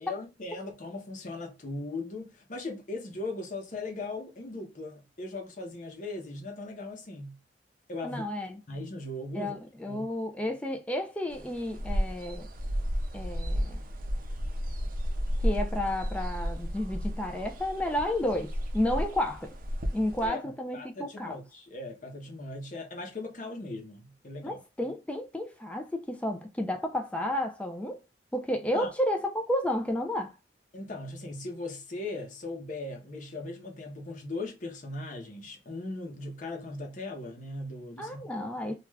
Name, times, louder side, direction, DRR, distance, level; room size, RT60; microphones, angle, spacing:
voice 1, 0.0-7.4 7.9-8.2 8.7-9.5 9.9-10.1 20.2-20.4 20.7-24.6 28.7-28.9 30.7-38.3, left 2 dB, 45° left, 0.7 m, -38 dB
voice 2, 8.0-8.6 9.3-12.5 13.1-13.8 15.4-19.5 19.9-21.4 24.4-28.0 28.3-30.3 38.0-38.8, left 1 dB, 5° left, 0.3 m, -31 dB
sound 1, 11.3-20.3, equal, 50° right, 0.5 m, -33 dB
2.4 x 2.3 x 3.1 m
head